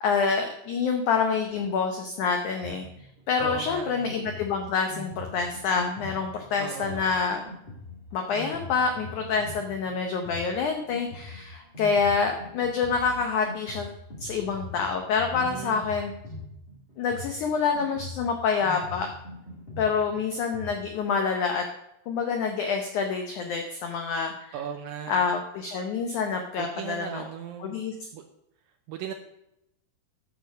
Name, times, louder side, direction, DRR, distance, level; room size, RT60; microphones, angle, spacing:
voice 1, 0.0-2.9 3.3-7.4 8.1-13.9 14.2-16.1 17.0-19.1 19.8-21.6 22.1-24.5 25.1-27.2 27.6-27.9, left 5 dB, 80° left, 4 dB, 1.7 m, -27 dB
Drum kit, 2.6-20.8, left 2 dB, 20° left, 1.4 m, -42 dB
voice 2, 3.4-4.3 6.6-7.2 15.3-15.9 24.5-25.2 26.6-27.8 28.1-28.2 28.9-29.1, right 9 dB, 80° right, 5 dB, 2.1 m, -37 dB
10.5 x 7.3 x 5.1 m, 0.83 s
omnidirectional pair, 4.7 m